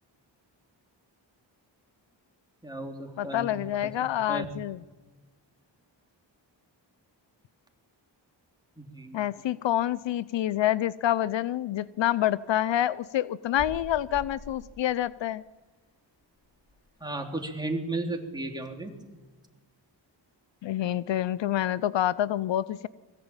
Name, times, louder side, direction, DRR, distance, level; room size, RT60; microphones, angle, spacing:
voice 1, 2.6-4.5 8.8-9.3 17.0-19.0, right 2 dB, 10° right, 1 dB, 3.5 m, -35 dB
voice 2, 3.2-4.8 9.1-15.4 20.6-22.9, left 12 dB, 75° left, 19 dB, 0.6 m, -27 dB
sound 1, 11.9-17.1 17.6-17.7 17.9-19.3, left 2 dB, 35° left, 4.3 m, -47 dB
22.0 x 15.0 x 8.9 m, 1.3 s
cardioid pair, 65°, 45 cm